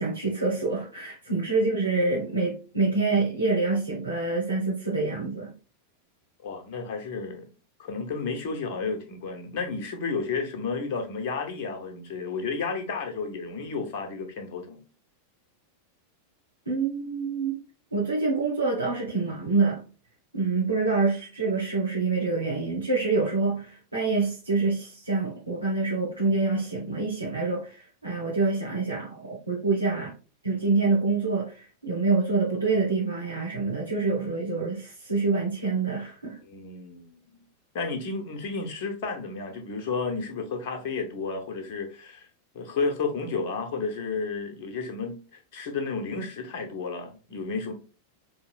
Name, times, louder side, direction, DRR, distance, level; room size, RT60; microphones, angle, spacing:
voice 1, 0.0-5.5 16.7-17.6 17.9-19.8 20.3-30.1 30.4-36.4, right 3 dB, 85° right, 1.1 m, -26 dB
voice 2, 6.4-7.5 7.8-14.8 36.4-37.2 37.7-42.3 42.5-47.7, left 4 dB, 45° left, 0.9 m, -32 dB
4.7 x 2.8 x 2.3 m
figure-of-eight pair, 90°, 0 cm